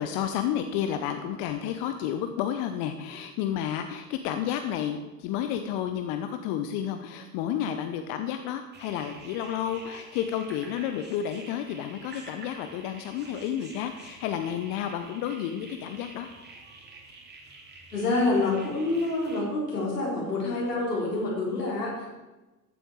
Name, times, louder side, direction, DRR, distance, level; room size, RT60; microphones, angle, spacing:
voice 1, 0.0-16.3, left 9 dB, 45° left, 7 dB, 1.0 m, -31 dB
sound 1, 8.7-19.4, right 3 dB, 20° right, 2.6 m, -48 dB
voice 2, 17.9-22.1, left 2 dB, 75° left, -4 dB, 4.8 m, -27 dB
14.5 x 9.0 x 4.8 m, 1.1 s
figure-of-eight pair, 80°, 47 cm